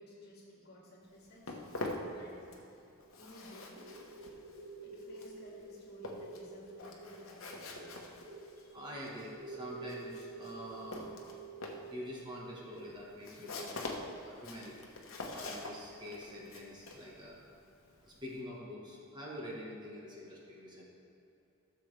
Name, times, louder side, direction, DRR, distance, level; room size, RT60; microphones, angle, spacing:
voice 1, 0.0-2.9 3.1-3.9 4.8-7.9, equal, 50° left, -3 dB, 2.1 m, -55 dB
Walk footsteps, 1.0-2.8 3.0-18.4, left 2 dB, 65° left, 1.1 m, -45 dB
sound 1, 3.8-13.6, right 3 dB, 60° right, 1.1 m, -50 dB
voice 2, 8.7-11.2 11.7-14.9 15.3-17.4 18.1-20.9, equal, 20° right, -4 dB, 1.3 m, -46 dB
13.5 x 6.9 x 3.3 m, 2.8 s
head